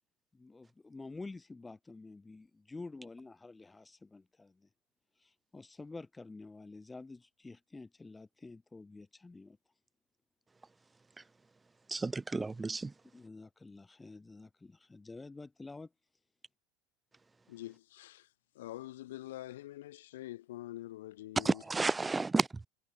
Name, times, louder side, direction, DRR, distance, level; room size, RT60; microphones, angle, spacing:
voice 1, 0.3-4.7 5.2-9.6 13.1-15.9, left 3 dB, 15° left, 1.8 m, -49 dB
voice 2, 11.9-12.9 21.4-22.6, right 3 dB, 15° right, 1.7 m, -31 dB
voice 3, 17.5-18.3 18.6-21.6, left 15 dB, 75° left, 1.7 m, -45 dB
hypercardioid pair, 85°, 0 cm